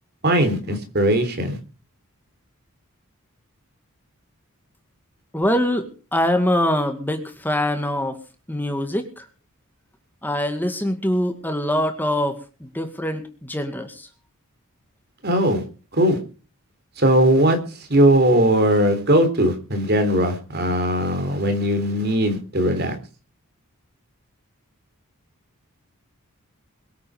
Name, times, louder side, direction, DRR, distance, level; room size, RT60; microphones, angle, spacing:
voice 1, 0.2-1.6 15.2-15.6 15.9-16.2 17.0-17.6 17.9-23.0, right 1 dB, 45° right, 7 dB, 3.5 m, -19 dB
voice 2, 5.3-8.2 8.5-9.2 10.2-14.1, left 1 dB, 10° left, 6 dB, 2.1 m, -24 dB
22.5 x 8.7 x 5.0 m, 0.36 s
head